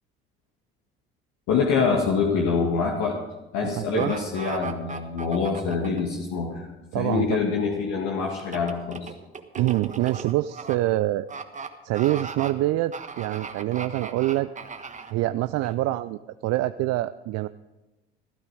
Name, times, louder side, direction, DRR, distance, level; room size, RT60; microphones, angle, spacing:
voice 1, 1.5-3.2 3.5-6.7 6.9-9.1, left 5 dB, 65° left, -1 dB, 2.1 m, -25 dB
voice 2, 3.8-4.1 6.9-7.4 9.6-11.3 11.8-14.5 15.1-17.5, right 16 dB, 55° right, 13 dB, 0.5 m, -25 dB
sound 1, 4.0-6.0 8.4-10.8 11.3-11.7 11.9-12.5 12.9-15.1 15.6-15.7, right 5 dB, 25° right, 1.4 m, -37 dB
15.5 x 12.5 x 4.9 m, 1.1 s
hypercardioid pair, 65°, 30 cm